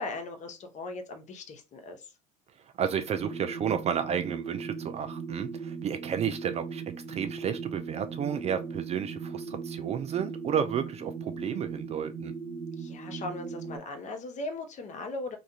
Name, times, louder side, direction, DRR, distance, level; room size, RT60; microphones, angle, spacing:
voice 1, 0.0-2.1 12.8-15.4, left 2 dB, 40° left, 0.7 m, -38 dB
voice 2, 2.8-12.3, right 8 dB, 35° right, 0.4 m, -32 dB
sound 1, 3.1-13.8, right 5 dB, ahead, 1.0 m, -39 dB
2.4 x 2.2 x 2.7 m
hypercardioid pair, 75°, 20 cm